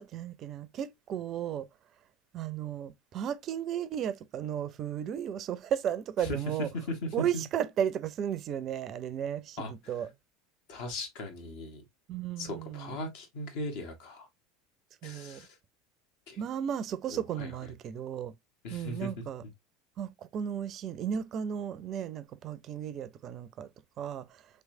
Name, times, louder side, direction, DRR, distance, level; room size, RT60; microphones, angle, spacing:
voice 1, 0.0-1.7 2.3-6.7 7.1-10.1 12.1-13.0 15.0-15.4 16.4-18.3 18.7-19.4 20.0-23.7 24.0-24.4, right 9 dB, 45° right, 0.4 m, -34 dB
voice 2, 6.7-7.4 9.6-10.1 10.7-11.8 12.4-14.3 15.0-15.5 16.3-16.4 17.1-17.5 18.6-19.1, left 1 dB, 60° left, 1.0 m, -38 dB
3.2 x 3.2 x 2.6 m
figure-of-eight pair, 75°, 0 cm